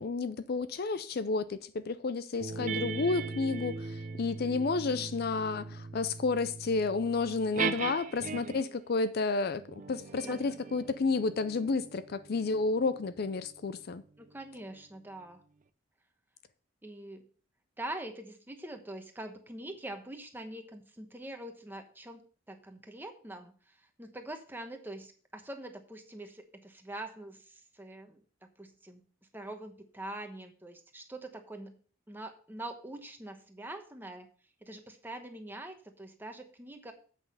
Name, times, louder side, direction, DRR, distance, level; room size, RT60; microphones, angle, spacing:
voice 1, 0.0-14.0, left 4 dB, 50° left, 0.4 m, -31 dB
sound 1, 2.4-8.8 9.5-14.5, right 4 dB, 40° right, 0.6 m, -40 dB
voice 2, 4.9-5.2 10.2-10.5 14.2-15.4 16.8-17.2 17.8-28.2 28.6-29.0 29.3-31.8 32.1-34.3 34.6-36.9, right 1 dB, 10° right, 1.0 m, -44 dB
8.0 x 6.2 x 5.4 m
head